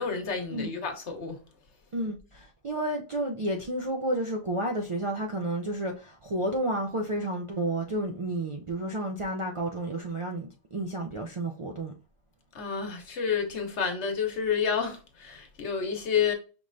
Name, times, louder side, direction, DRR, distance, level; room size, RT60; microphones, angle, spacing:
voice 1, 0.0-1.4 12.5-16.3, left 6 dB, 80° left, 1.2 m, -29 dB
voice 2, 1.9-11.9, right 1 dB, 50° right, 0.3 m, -31 dB
5.2 x 3.2 x 2.5 m
omnidirectional pair, 1.2 m